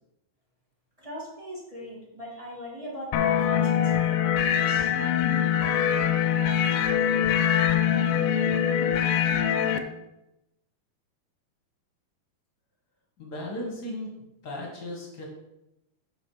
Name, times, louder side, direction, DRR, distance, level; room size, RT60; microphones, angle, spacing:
voice 1, 1.0-4.9, equal, 75° right, -6 dB, 0.3 m, -40 dB
sound 1, 3.1-9.8, left 9 dB, 80° left, 2.2 m, -23 dB
voice 2, 13.2-14.1 14.4-15.2, left 1 dB, 45° left, -2 dB, 1.3 m, -36 dB
7.7 x 5.6 x 4.8 m, 0.92 s
omnidirectional pair, 4.2 m